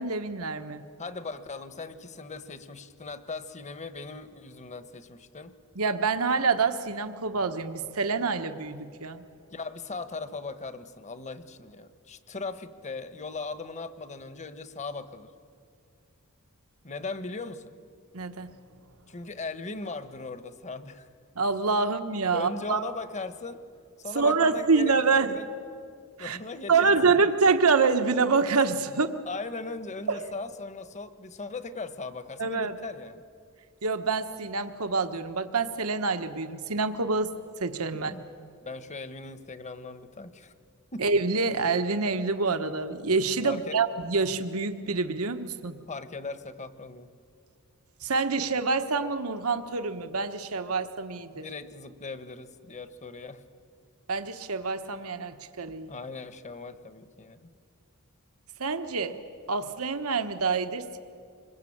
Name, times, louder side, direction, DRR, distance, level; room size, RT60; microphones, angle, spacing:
voice 1, 0.0-0.8 5.8-9.2 18.1-18.5 21.4-22.8 24.1-25.3 26.2-26.4 26.7-29.1 30.1-30.2 32.4-32.7 33.8-37.3 37.6-38.1 41.0-45.8 48.0-51.4 54.1-55.9 58.6-59.2 59.5-61.0, right 4 dB, 90° right, 9 dB, 1.3 m, -26 dB
voice 2, 1.0-5.6 9.5-15.3 16.8-17.8 19.1-21.1 22.3-23.6 24.0-25.5 26.2-27.2 29.3-33.2 37.9-38.3 38.6-40.5 40.9-41.1 43.4-43.8 45.9-47.1 51.3-53.4 55.9-57.5, left 3 dB, 35° left, 12 dB, 1.2 m, -39 dB
26.5 x 21.5 x 8.7 m, 2.4 s
head